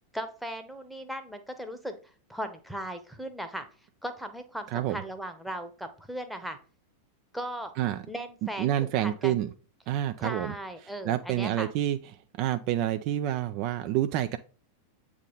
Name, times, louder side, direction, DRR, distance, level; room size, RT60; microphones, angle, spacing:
voice 1, 0.1-1.9 2.3-3.7 4.0-6.6 7.3-7.7 8.1-8.7 9.0-9.4 10.2-11.7, right 1 dB, ahead, 6 dB, 0.9 m, -37 dB
voice 2, 8.6-9.5 9.9-10.5 11.0-12.0 12.4-14.4, right 12 dB, 45° right, 8 dB, 0.4 m, -28 dB
8.0 x 3.6 x 3.9 m, 0.39 s
figure-of-eight pair, 90°, 0 cm